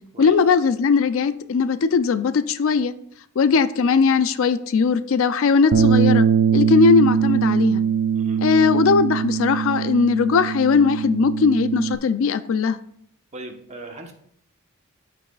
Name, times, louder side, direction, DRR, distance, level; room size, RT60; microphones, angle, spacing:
voice 1, 0.2-2.9 3.4-6.3 6.5-7.8 8.4-12.8, left 5 dB, 65° left, 0.4 m, -19 dB
Bass guitar, 5.7-12.0, right 7 dB, 70° right, 0.4 m, -21 dB
voice 2, 8.1-8.4 13.3-14.1, right 2 dB, 30° right, 1.0 m, -38 dB
14.0 x 4.7 x 2.3 m
head